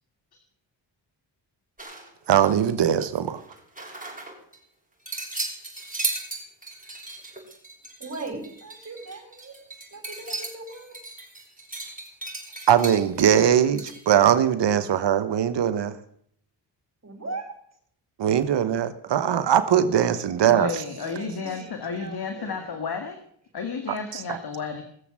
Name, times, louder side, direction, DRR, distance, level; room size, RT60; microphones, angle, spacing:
sound 1, 1.8-2.7 3.0-4.6 5.1-14.1, right 3 dB, 20° right, 6.3 m, -36 dB
voice 1, 2.3-3.4 12.7-15.9 18.2-20.8 24.1-24.4, right 9 dB, 75° right, 12 dB, 1.1 m, -21 dB
voice 2, 8.0-9.6 9.9-11.0 17.0-17.5 20.9-22.9, right 3 dB, 35° right, 3 dB, 6.1 m, -39 dB
voice 3, 20.4-23.2 23.5-24.8, left 5 dB, 60° left, 6 dB, 2.0 m, -32 dB
20.0 x 7.2 x 7.5 m, 0.64 s
cardioid pair, 60°, 43 cm